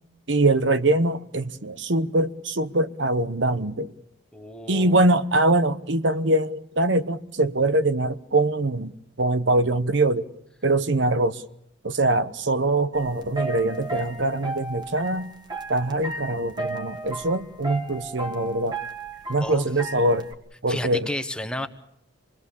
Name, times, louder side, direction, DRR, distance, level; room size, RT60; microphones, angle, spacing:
voice 1, 0.3-3.9 4.7-10.3 10.6-11.4 11.8-15.3 15.7-18.8 19.3-20.3 20.6-21.1, right 2 dB, 65° right, 1.0 m, -23 dB
voice 2, 4.3-5.0 19.4-19.7 20.7-21.7, left 1 dB, 5° left, 1.1 m, -32 dB
sound 1, 12.9-20.3, right 2 dB, 20° right, 1.7 m, -35 dB
26.5 x 21.0 x 7.0 m
head